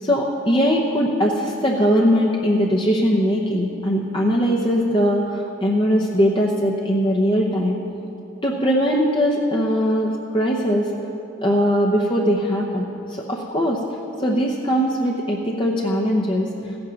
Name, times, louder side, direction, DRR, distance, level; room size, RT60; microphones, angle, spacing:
voice 1, 0.0-7.8 8.4-10.9 11.4-13.8 14.2-16.5, equal, 25° left, -2 dB, 0.8 m, -20 dB
15.0 x 8.7 x 6.3 m, 2.7 s
head